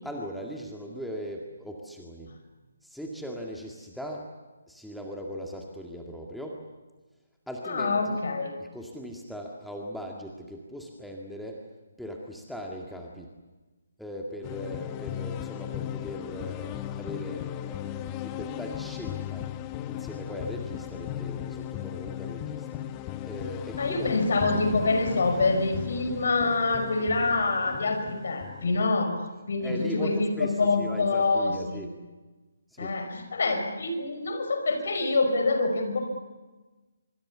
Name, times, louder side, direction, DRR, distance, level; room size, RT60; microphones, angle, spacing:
voice 1, 0.0-2.3 2.8-4.3 4.7-6.6 7.5-8.2 8.6-11.6 12.0-13.3 14.0-19.5 19.9-22.8 23.2-24.2 29.6-31.9 32.7-32.9, equal, ahead, -1 dB, 2.0 m, -39 dB
voice 2, 7.6-8.5 23.8-29.1 29.5-31.9 32.8-36.0, left 3 dB, 55° left, 6 dB, 5.5 m, -26 dB
sound 1, 14.4-28.9, left 12 dB, 20° left, 0.9 m, -37 dB
25.0 x 24.0 x 7.3 m, 1.2 s
figure-of-eight pair, 140°, 0 cm